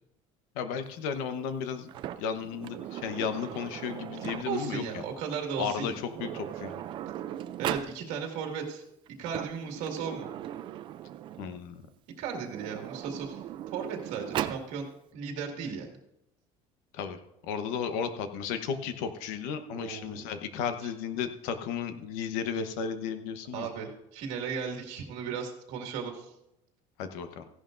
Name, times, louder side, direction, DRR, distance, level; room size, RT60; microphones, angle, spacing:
voice 1, 0.5-1.9 2.2-5.0 5.6-5.9 6.2-6.8 11.4-11.8 16.9-23.7 27.0-27.5, left 7 dB, 85° left, 8 dB, 1.0 m, -34 dB
Sliding door, 1.9-4.7 5.7-5.8 6.1-7.9 9.1-11.6 12.4-14.7, right 11 dB, 35° right, 0.4 m, -38 dB
voice 2, 4.5-6.0 7.6-8.8 9.2-10.3 12.2-13.4 13.7-14.9 15.1-15.9 19.7-20.2 23.5-26.3, right 6 dB, 65° right, 2 dB, 2.1 m, -35 dB
15.5 x 11.0 x 2.6 m, 0.85 s
cardioid pair, 175°, 14 cm